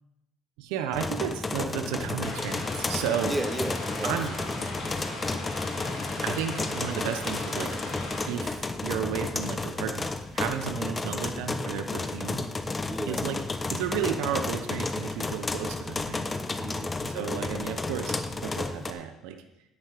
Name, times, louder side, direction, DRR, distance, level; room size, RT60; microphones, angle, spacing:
voice 1, 0.6-3.3 4.0-4.3 6.2-7.8 8.2-12.5 13.1-13.4 13.7-16.3 17.0-19.4, right 9 dB, 85° right, 7 dB, 0.9 m, -33 dB
sound 1, 0.9-18.9, left 3 dB, 20° left, 0.8 m, -32 dB
sound 2, 2.2-8.3, left 2 dB, 45° left, 3.6 m, -38 dB
voice 2, 3.2-4.9 10.7-11.1 12.9-13.2 16.6-17.3, right 1 dB, 5° right, 8 dB, 1.0 m, -35 dB
10.5 x 8.5 x 5.1 m, 0.90 s
cardioid pair, 115°, 0 cm